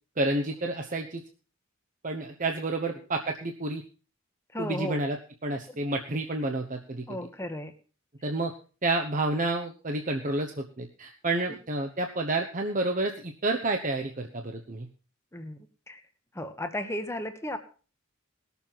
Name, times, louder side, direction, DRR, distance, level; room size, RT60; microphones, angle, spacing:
voice 1, 0.2-1.2 2.0-3.8 4.6-7.2 8.2-8.5 8.8-14.9, right 2 dB, 40° right, 3 dB, 1.0 m, -30 dB
voice 2, 4.5-5.0 7.1-7.7 11.5-11.6 15.3-16.0 16.3-17.6, left 1 dB, 15° left, 8 dB, 1.2 m, -35 dB
18.5 x 7.1 x 5.8 m, 0.37 s
head